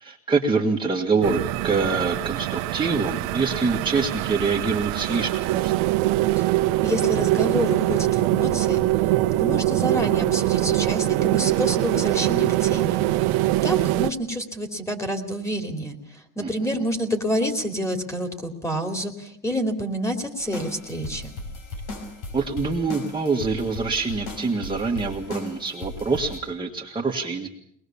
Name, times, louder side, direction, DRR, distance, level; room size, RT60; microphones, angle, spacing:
voice 1, 0.0-5.7 16.4-16.9 22.3-27.5, right 4 dB, 15° right, -2 dB, 1.8 m, -25 dB
sound 1, 1.2-14.1, right 17 dB, 85° right, 1.0 m, -23 dB
voice 2, 6.8-8.8 9.3-16.0 16.4-21.3, equal, 10° left, 7 dB, 2.9 m, -28 dB
sound 2, 20.4-26.4, left 2 dB, 75° left, 6.2 m, -37 dB
22.5 x 20.0 x 7.1 m, 0.69 s
cardioid pair, 130°, 32 cm